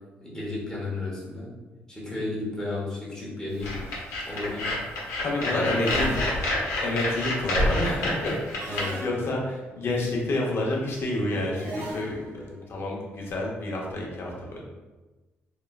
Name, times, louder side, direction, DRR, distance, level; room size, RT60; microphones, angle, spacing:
voice 1, 0.2-1.5 1.9-3.8 4.3-4.7 5.3-6.1 8.6-9.2 12.4-12.5, left 2 dB, 15° left, -6 dB, 1.0 m, -33 dB
sound 1, 3.6-8.8, left 1 dB, 85° left, 0.8 m, -28 dB
sound 2, 3.8-4.1 5.8-6.8 8.6-9.6 11.6-12.5, right 1 dB, 70° right, 0.9 m, -39 dB
voice 2, 5.2-6.1 6.8-12.4 12.7-14.6, left 2 dB, 55° left, -2 dB, 0.7 m, -29 dB
3.0 x 2.2 x 2.2 m, 1.2 s
cardioid pair, 80°, 5 cm